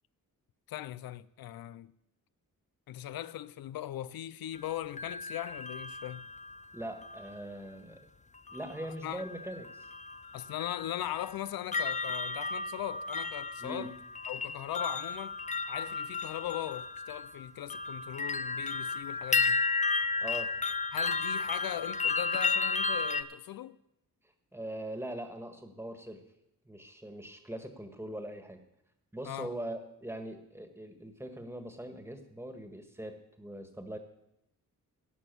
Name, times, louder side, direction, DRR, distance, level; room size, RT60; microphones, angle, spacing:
voice 1, 0.7-1.9 2.9-6.3 9.0-9.2 10.3-14.0 14.3-15.4 15.7-19.6 20.9-23.8 29.2-29.5, left 12 dB, 90° left, 0.5 m, -39 dB
sound 1, 4.6-7.3 8.5-8.9 9.2-23.2, left 4 dB, 20° left, 0.5 m, -34 dB
voice 2, 6.7-8.1 8.5-9.9 13.6-13.9 20.2-20.5 24.5-26.2 26.6-28.6 29.1-34.0, right 1 dB, 5° right, 1.6 m, -41 dB
16.5 x 6.1 x 6.9 m
cardioid pair, 90°, 35 cm